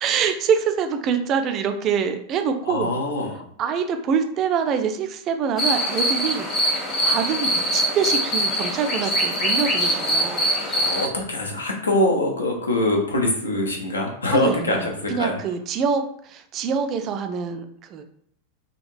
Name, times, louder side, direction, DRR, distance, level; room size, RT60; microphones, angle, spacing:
voice 1, 0.0-2.9 3.6-10.5 14.3-18.0, right 6 dB, 35° right, 7 dB, 0.3 m, -25 dB
voice 2, 2.7-3.5 10.7-15.4, left 1 dB, 75° left, 1 dB, 0.7 m, -23 dB
sound 1, 5.6-11.1, equal, 25° left, 1.0 m, -23 dB
3.6 x 2.3 x 2.6 m, 0.64 s
figure-of-eight pair, 90°, 0 cm